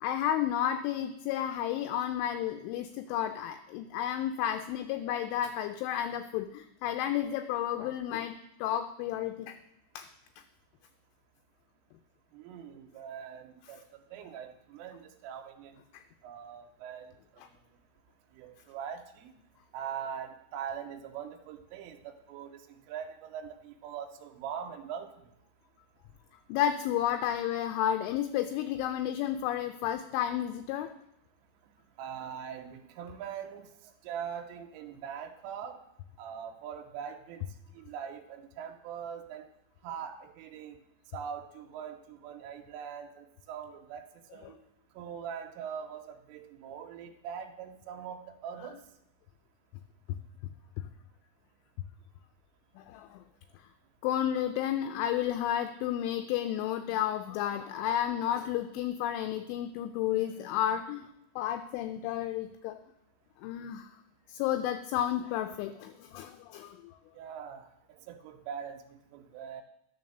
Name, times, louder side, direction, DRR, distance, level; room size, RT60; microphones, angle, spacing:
voice 1, 0.0-9.6 10.0-10.1 15.9-16.0 26.5-30.9 52.8-53.2 54.0-61.1 61.4-62.8 63.4-63.9 64.3-67.0, left 11 dB, 85° left, 7 dB, 2.8 m, -32 dB
voice 2, 12.3-13.9 14.1-15.8 16.2-17.1 18.4-19.3 19.7-25.1 32.0-33.7 34.0-35.8 36.2-37.4 37.7-39.4 39.8-40.8 41.1-44.0 44.3-44.6 45.0-48.8 67.2-69.6, right 8 dB, 90° right, 5 dB, 3.3 m, -42 dB
11.0 x 6.1 x 6.6 m, 0.84 s
omnidirectional pair, 5.7 m